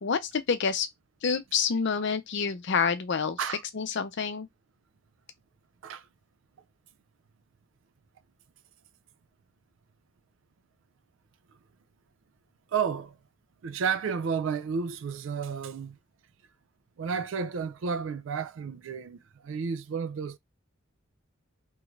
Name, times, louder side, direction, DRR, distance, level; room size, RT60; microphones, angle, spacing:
voice 1, 0.0-0.9 1.2-3.4 3.7-4.5, left 6 dB, 60° left, 0.6 m, -28 dB
voice 2, 12.7-13.2 13.6-16.0 17.0-20.4, right 6 dB, 65° right, 0.4 m, -32 dB
3.0 x 2.5 x 3.1 m
head